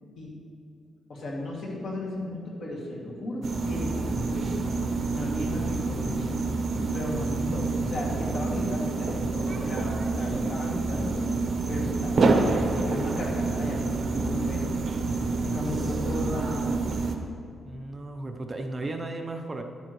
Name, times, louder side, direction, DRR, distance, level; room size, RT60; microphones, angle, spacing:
voice 1, 1.1-4.5 5.0-6.5 6.9-11.2 11.7-14.6 15.4-16.6 16.9-17.1, left 1 dB, 65° left, -3 dB, 2.3 m, -35 dB
sound 1, 3.4-17.2, right 3 dB, 50° right, 0.9 m, -27 dB
voice 2, 17.6-19.6, right 2 dB, 25° right, 4 dB, 0.6 m, -35 dB
11.0 x 9.6 x 3.1 m, 2.4 s
cardioid pair, 120°, 0 cm